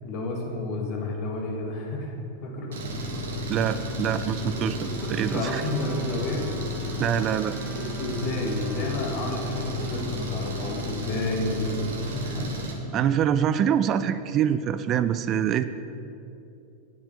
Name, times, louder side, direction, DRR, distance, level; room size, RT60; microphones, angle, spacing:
voice 1, 0.0-2.1 2.4-3.2 4.5-6.5 7.7-12.7 13.0-13.2, left 2 dB, 40° left, 1 dB, 1.9 m, -31 dB
Engine, 2.7-12.7, left 1 dB, 65° right, 1.4 m, -33 dB
voice 2, 3.5-5.6 7.0-7.5 12.9-15.6, right 9 dB, 35° right, 12 dB, 0.4 m, -25 dB
Trumpet, 5.0-9.9, right 2 dB, 10° right, 0.8 m, -48 dB
9.5 x 7.3 x 6.6 m, 2.8 s
figure-of-eight pair, 90°, 0 cm